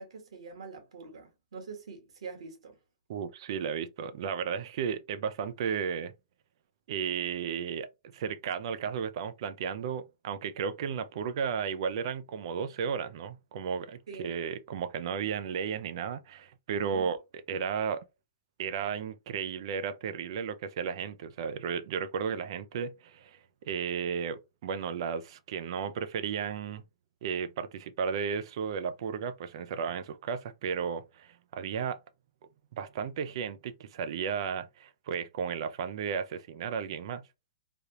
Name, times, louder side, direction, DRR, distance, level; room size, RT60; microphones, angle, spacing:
voice 1, 0.0-2.8 14.1-14.3 16.8-17.1, right 5 dB, 75° right, 1.4 m, -44 dB
voice 2, 3.1-6.1 6.9-17.2 17.5-18.0 18.6-26.8 27.2-32.0 32.7-37.3, right 7 dB, 55° right, 0.4 m, -34 dB
3.4 x 2.3 x 2.7 m
hypercardioid pair, 135°, 3 cm